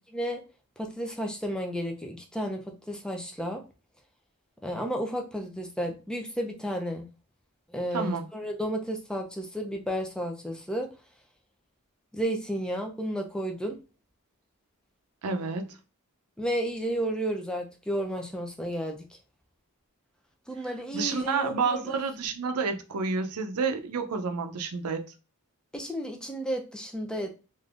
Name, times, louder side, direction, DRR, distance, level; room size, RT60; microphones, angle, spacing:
voice 1, 0.8-3.6 4.6-7.1 7.7-10.9 12.1-13.8 16.4-19.1 20.5-22.0 25.7-27.3, equal, 5° left, 0.4 m, -32 dB
voice 2, 7.9-8.2 15.2-15.8 20.9-25.0, right 4 dB, 85° right, 0.5 m, -29 dB
3.4 x 2.5 x 2.4 m
head